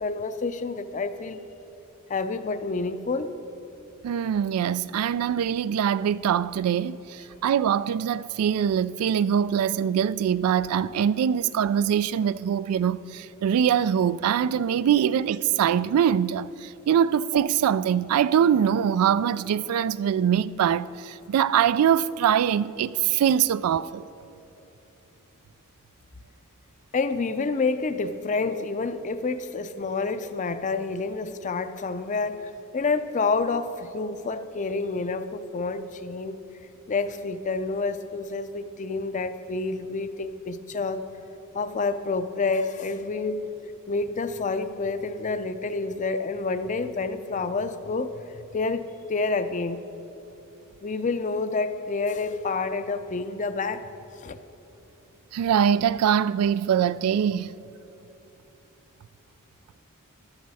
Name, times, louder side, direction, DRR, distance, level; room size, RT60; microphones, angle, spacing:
voice 1, 0.0-1.4 2.1-3.3 26.9-36.4 36.9-41.0 41.5-43.4 43.9-49.8 50.8-53.8 54.2-54.4, left 3 dB, 35° left, 0.5 m, -28 dB
voice 2, 4.0-24.0 55.3-57.5, right 8 dB, 85° right, 0.3 m, -23 dB
15.0 x 11.5 x 4.1 m
head